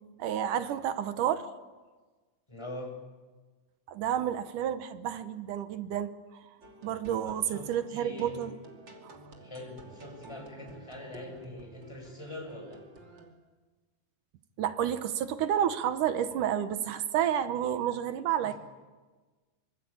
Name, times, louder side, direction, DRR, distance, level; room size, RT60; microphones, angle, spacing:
voice 1, 0.2-1.5 3.9-6.1 6.8-8.5 9.0-9.2 14.6-18.5, right 10 dB, 75° right, 11 dB, 2.5 m, -30 dB
voice 2, 2.5-2.9 7.2-8.4 9.4-12.8 18.4-18.5, left 1 dB, 5° left, 2 dB, 6.7 m, -43 dB
sound 1, 6.6-13.3, right 3 dB, 35° right, 3.2 m, -51 dB
25.5 x 24.5 x 8.7 m, 1.3 s
omnidirectional pair, 3.9 m